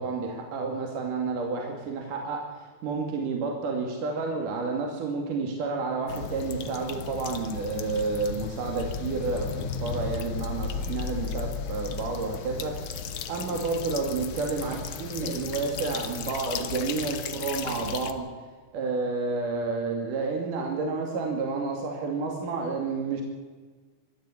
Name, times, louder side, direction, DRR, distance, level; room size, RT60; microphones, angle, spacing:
voice 1, 0.0-18.3 18.7-23.2, right 4 dB, 65° right, 2 dB, 3.9 m, -30 dB
sound 1, 6.1-18.1, left 6 dB, 85° left, 1.1 m, -35 dB
23.5 x 13.5 x 8.6 m, 1.4 s
omnidirectional pair, 4.2 m